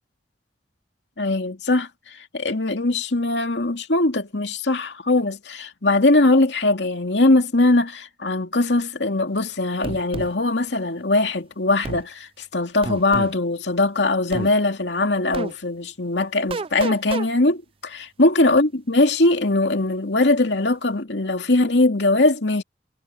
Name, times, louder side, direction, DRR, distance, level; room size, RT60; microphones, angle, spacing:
voice 1, 1.2-22.6, left 2 dB, 85° left, 2.4 m, -21 dB
sound 1, 9.8-10.3 11.8-12.0 12.8-13.3 14.3-14.5 15.3-15.5 16.5-17.3, right 3 dB, 30° right, 0.4 m, -29 dB
head